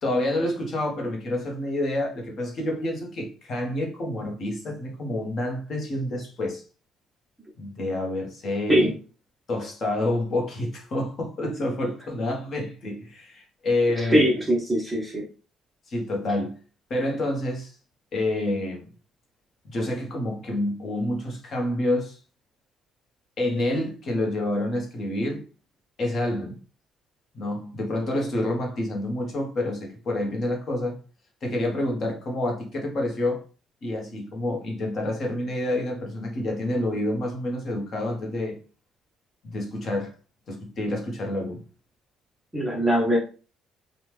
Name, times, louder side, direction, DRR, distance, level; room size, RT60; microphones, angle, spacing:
voice 1, 0.0-6.6 7.6-9.0 9.5-14.4 15.9-16.6 16.9-17.8 18.1-18.9 19.6-22.2 23.4-25.4 26.0-26.6 27.3-31.0 31.4-33.4 33.8-38.6 39.4-40.1 40.5-41.6, left 1 dB, 35° left, 0.8 m, -28 dB
voice 2, 14.0-15.2 42.5-43.2, equal, 5° right, 0.6 m, -21 dB
3.4 x 2.1 x 3.0 m
cardioid pair, 180°, 0 cm